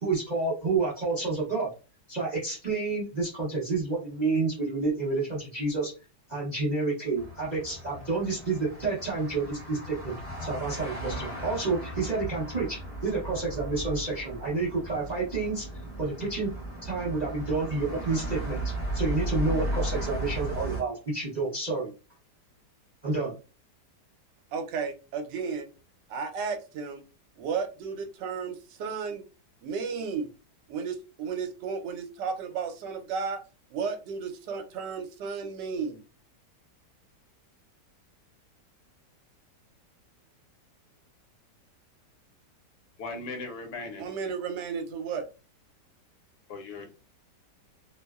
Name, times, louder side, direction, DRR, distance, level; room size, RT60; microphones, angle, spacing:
voice 1, 0.0-1.7 2.1-5.9 6.3-15.7 16.0-16.5 16.8-21.9 23.0-23.3, right 3 dB, 55° right, -4 dB, 0.5 m, -29 dB
sound 1, 7.2-20.8, right 1 dB, 35° left, 0.6 m, -36 dB
voice 2, 24.5-25.7 26.1-27.0 27.4-29.2 29.6-30.3 30.7-33.4 33.7-36.0 44.0-45.3, right 5 dB, 85° right, 6 dB, 1.2 m, -33 dB
voice 3, 43.0-44.0 46.5-47.0, left 3 dB, 70° left, 4 dB, 1.1 m, -38 dB
2.8 x 2.0 x 2.2 m, 0.31 s
omnidirectional pair, 1.8 m